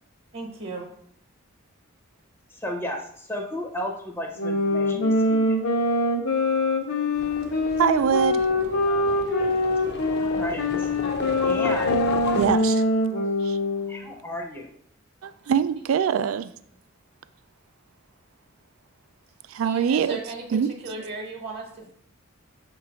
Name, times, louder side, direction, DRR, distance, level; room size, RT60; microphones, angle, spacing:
voice 1, 0.3-0.9 19.6-20.4 20.8-21.9, right 3 dB, 50° right, 1.0 m, -35 dB
voice 2, 2.5-5.6 10.1-10.9 11.4-12.0 13.9-14.7, left 1 dB, 10° left, 0.6 m, -33 dB
sound 1, 4.4-14.0, left 1 dB, 85° left, 1.1 m, -24 dB
Livestock farm animals working animals, 7.2-12.5, left 3 dB, 50° left, 0.6 m, -32 dB
voice 3, 7.8-8.5 12.4-12.8 13.4-13.6 15.2-16.5 19.5-20.2 20.5-20.7, right 7 dB, 75° right, 0.3 m, -23 dB
6.6 x 3.0 x 4.8 m
head